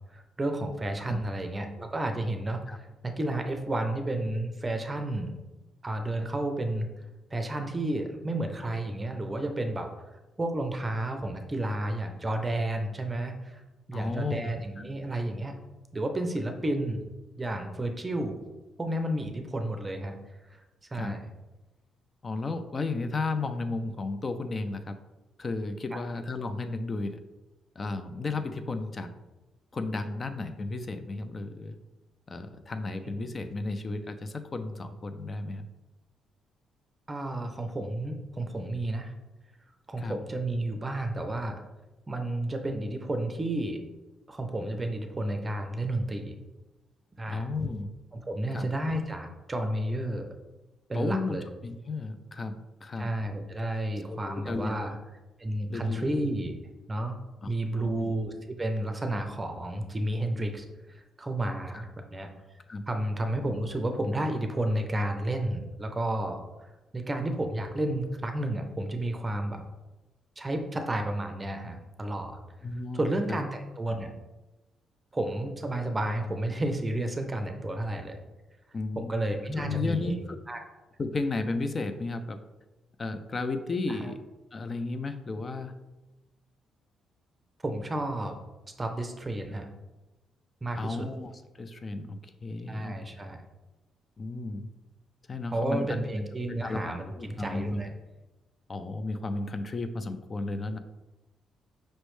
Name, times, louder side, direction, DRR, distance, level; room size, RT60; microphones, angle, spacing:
voice 1, 0.1-2.6 3.0-5.3 5.8-6.9 7.3-9.9 10.4-13.6 13.9-15.5 15.9-17.0 17.4-18.4 18.8-20.2 20.5-20.6 20.9-21.3 25.9-26.0 33.0-33.1 37.1-39.1 39.9-41.6 42.1-43.8 44.3-46.4 47.2-47.5 48.2-50.3 50.9-51.4 53.0-55.0 55.4-56.5 56.9-57.2 57.5-60.7 61.2-62.3 62.9-66.4 66.9-69.6 70.4-72.4 72.9-74.1 75.1-78.2 79.0-80.2 80.5-80.6 83.9-84.1 87.6-88.4 88.8-89.7 90.6-91.1 92.7-93.4 95.5-97.9, right 1 dB, 20° right, 5 dB, 0.6 m, -31 dB
voice 2, 13.9-14.5 14.8-14.9 20.9-21.1 22.2-25.0 25.4-27.2 27.8-29.1 29.7-31.7 32.3-35.7 40.0-40.2 47.3-47.9 48.5-48.7 50.9-53.1 53.6-53.7 54.1-55.0 55.7-56.2 57.4-58.1 61.7-61.8 62.7-62.8 72.6-73.4 78.7-79.1 79.6-80.4 81.0-82.4 83.0-84.2 84.5-85.7 90.7-91.3 91.6-92.9 94.2-94.7 95.3-96.0 96.6-97.8 98.7-100.8, left 3 dB, 35° left, 9 dB, 0.4 m, -33 dB
5.3 x 3.1 x 3.1 m, 1.1 s
cardioid pair, 90°, 0 cm